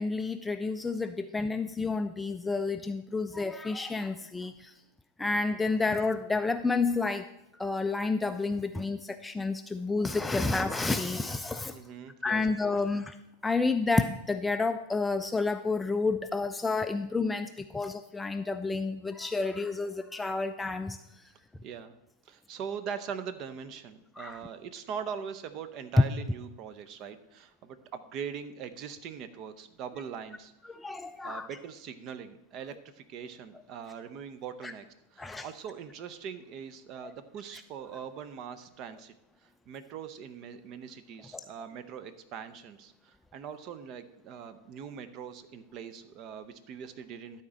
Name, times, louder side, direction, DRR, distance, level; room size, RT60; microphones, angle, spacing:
voice 1, 0.0-4.5 5.2-7.2 7.6-9.0 9.2-11.7 12.2-13.0 13.4-17.5 17.7-21.0 24.2-24.3 30.8-31.5 34.6-34.7 35.2-35.4, left 3 dB, 10° left, 9 dB, 0.4 m, -30 dB
voice 2, 11.7-12.7 21.6-22.0 22.2-30.5 31.2-34.8 35.1-39.1 39.4-47.4, right 7 dB, 40° right, 12 dB, 0.7 m, -41 dB
12.0 x 4.4 x 6.3 m, 0.86 s
figure-of-eight pair, 90°, 0 cm